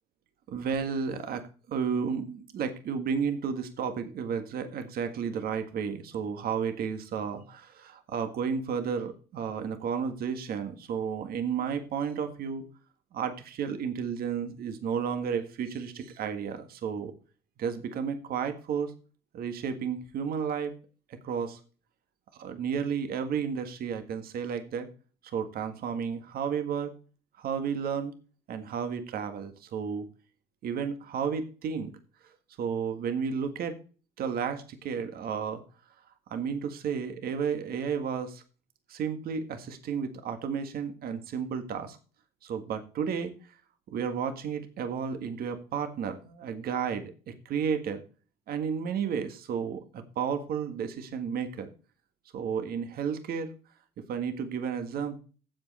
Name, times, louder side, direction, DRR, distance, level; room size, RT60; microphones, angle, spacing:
voice 1, 0.5-12.6 13.1-17.1 17.6-18.9 19.3-20.7 21.2-21.6 22.3-24.9 25.2-26.9 27.4-28.1 28.5-30.1 30.6-31.9 32.6-33.8 34.2-35.6 36.3-38.4 38.9-42.0 42.4-43.3 43.9-48.0 48.5-51.7 52.3-53.5 54.1-55.2, right 7 dB, 60° right, 8 dB, 1.7 m, -32 dB
15.5 x 5.2 x 4.2 m, 0.37 s
cardioid pair, 110°, 17 cm